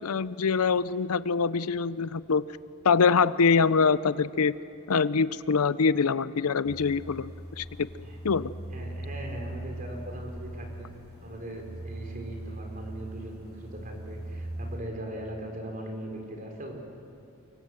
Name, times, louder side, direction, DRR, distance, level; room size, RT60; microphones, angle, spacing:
voice 1, 0.0-2.4 2.8-4.5 4.9-7.9 8.2-8.5, left 5 dB, 90° left, 17 dB, 0.6 m, -24 dB
sound 1, 6.6-14.8, right 1 dB, 15° right, 7.6 m, -40 dB
voice 2, 8.7-10.9 11.2-16.8, right 1 dB, 35° right, 2 dB, 4.3 m, -40 dB
25.5 x 23.5 x 7.8 m, 2.6 s
head